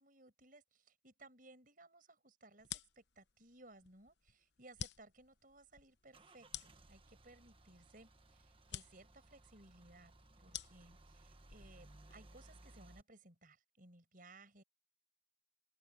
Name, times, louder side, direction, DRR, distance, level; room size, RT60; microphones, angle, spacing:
voice 1, 0.0-10.1 10.4-14.6, right 2 dB, 45° right, 6.4 m, -61 dB
sound 1, 2.6-12.5, left 9 dB, 65° left, 0.9 m, -52 dB
Car / Engine starting / Idling, 5.2-13.0, right 1 dB, 30° right, 1.3 m, -62 dB
head